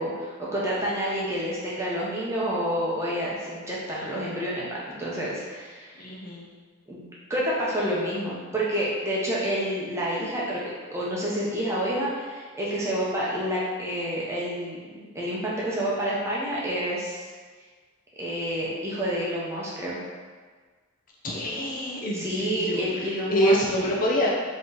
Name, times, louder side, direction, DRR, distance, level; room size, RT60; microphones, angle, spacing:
voice 1, 0.0-6.1 6.9-7.0 7.3-17.3 18.2-20.0 22.1-23.9, equal, 15° right, -6 dB, 0.7 m, -29 dB
voice 2, 6.0-6.5 21.2-22.8 23.3-24.3, equal, 40° left, -3 dB, 0.5 m, -25 dB
3.9 x 3.0 x 3.9 m, 1.5 s
head